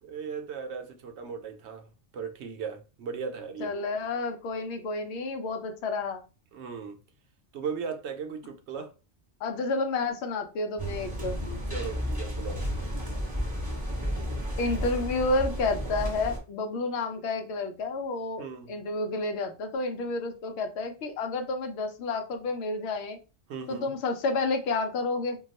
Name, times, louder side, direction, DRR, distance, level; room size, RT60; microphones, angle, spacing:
voice 1, 0.0-3.7 6.5-7.0 7.5-8.9 11.7-12.7 18.4-18.7 23.5-23.9, right 6 dB, 75° right, 0.8 m, -37 dB
voice 2, 3.6-6.2 9.4-11.4 14.6-23.2 23.7-25.4, left 3 dB, 70° left, 0.8 m, -30 dB
sound 1, 10.8-16.4, equal, 5° right, 1.0 m, -32 dB
2.3 x 2.3 x 3.9 m
omnidirectional pair, 1.2 m